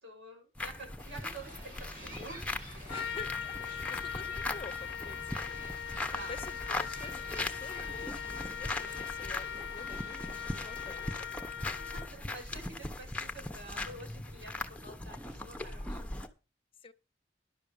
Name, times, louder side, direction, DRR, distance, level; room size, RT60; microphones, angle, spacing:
voice 1, 0.0-2.4 2.9-3.0 4.4-4.5 6.0-6.4 11.8-16.3, right 2 dB, 75° right, 6.4 m, -49 dB
sound 1, 0.6-16.3, left 2 dB, 5° left, 1.0 m, -40 dB
sound 2, 1.0-11.3, right 1 dB, 50° right, 6.6 m, -51 dB
Trumpet, 2.9-12.2, left 8 dB, 85° left, 0.6 m, -40 dB
voice 2, 2.9-11.9 16.8-16.9, left 3 dB, 30° left, 0.8 m, -49 dB
11.0 x 6.5 x 6.9 m
head